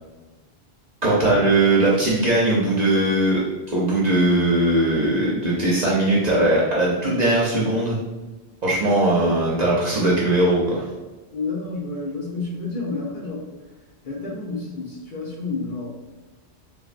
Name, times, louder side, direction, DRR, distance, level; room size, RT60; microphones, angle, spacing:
voice 1, 1.0-3.4 3.7-8.0 8.6-10.9, right 1 dB, 50° right, -5 dB, 0.5 m, -19 dB
voice 2, 11.3-13.4 14.0-16.0, left 3 dB, 55° left, -3 dB, 0.7 m, -30 dB
3.4 x 2.0 x 2.4 m, 1.1 s
omnidirectional pair, 1.1 m